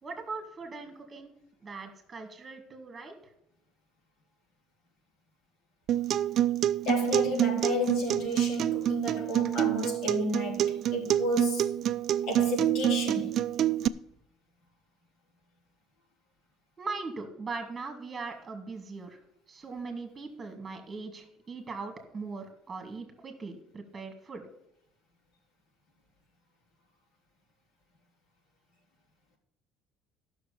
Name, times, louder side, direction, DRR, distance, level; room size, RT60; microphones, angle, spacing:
voice 1, 0.0-1.3 1.6-3.2 16.8-19.2 19.5-24.4, right 4 dB, 20° right, 2.1 m, -40 dB
Acoustic guitar, 5.9-13.9, right 11 dB, 50° right, 0.4 m, -27 dB
voice 2, 6.8-11.7 12.2-13.3, left 2 dB, 65° left, 4.4 m, -32 dB
12.5 x 6.2 x 6.8 m
cardioid pair, 140°, 0 cm